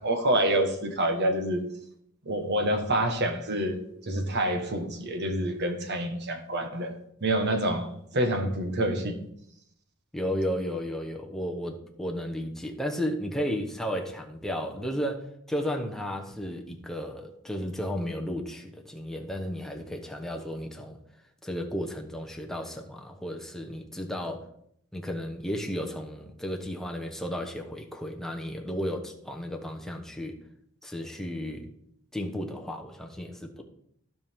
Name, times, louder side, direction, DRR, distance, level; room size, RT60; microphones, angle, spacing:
voice 1, 0.0-1.6 2.2-6.9 7.2-9.1, right 1 dB, 50° right, 5 dB, 1.4 m, -27 dB
voice 2, 10.1-21.0 21.4-24.5 24.9-30.3 30.8-31.7 32.1-33.6, equal, ahead, 1 dB, 1.0 m, -33 dB
15.0 x 5.2 x 3.6 m, 0.72 s
head